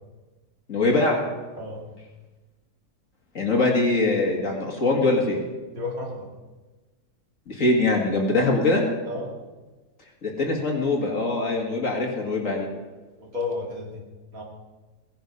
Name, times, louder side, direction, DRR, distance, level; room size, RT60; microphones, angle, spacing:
voice 1, 0.7-1.2 3.3-5.4 7.5-8.9 10.2-12.7, left 2 dB, 50° left, 0 dB, 2.4 m, -22 dB
voice 2, 5.7-6.3 9.1-9.3 13.2-14.0 14.3-14.4, left 3 dB, 55° right, -1 dB, 2.8 m, -32 dB
17.5 x 10.5 x 5.4 m, 1.2 s
omnidirectional pair, 1.8 m